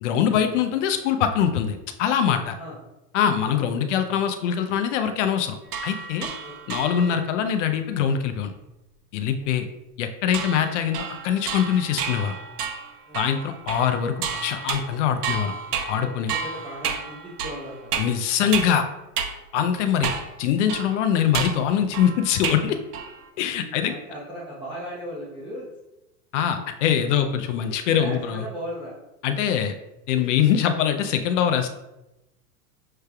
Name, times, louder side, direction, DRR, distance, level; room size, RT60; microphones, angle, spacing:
voice 1, 0.0-2.6 3.1-5.6 5.8-6.3 6.7-8.5 9.1-9.7 10.0-12.3 13.1-15.5 15.9-16.3 18.0-18.9 19.5-20.1 20.4-22.8 23.4-23.9 26.3-28.5 29.2-29.7 30.1-31.7, left 8 dB, 50° left, 7 dB, 0.5 m, -23 dB
voice 2, 3.5-3.9 6.4-6.9 9.4-9.5 13.1-13.4 15.9-16.1 16.4-18.1 23.6-25.7 28.0-28.9, equal, 10° right, -7 dB, 0.8 m, -37 dB
sound 1, 5.7-7.3 10.3-18.8 19.2-19.3 20.0-20.4 20.7-22.7 22.9-23.3, right 6 dB, 85° right, 0.8 m, -31 dB
6.6 x 3.2 x 2.2 m, 0.95 s
hypercardioid pair, 130°, 46 cm